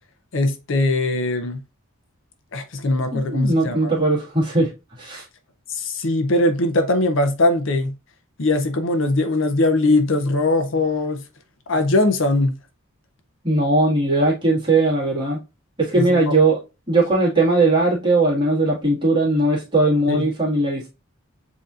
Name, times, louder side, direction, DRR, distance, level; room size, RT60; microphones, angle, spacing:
voice 1, 0.3-1.6 2.5-3.9 5.7-7.9 8.4-11.2 11.7-12.5 15.9-16.4 20.1-20.3, left 2 dB, 60° left, 0.6 m, -20 dB
voice 2, 3.1-4.7 5.0-5.2 13.4-15.4 15.8-16.6 16.9-20.9, right 2 dB, 20° right, 1.8 m, -19 dB
7.6 x 2.8 x 2.4 m
head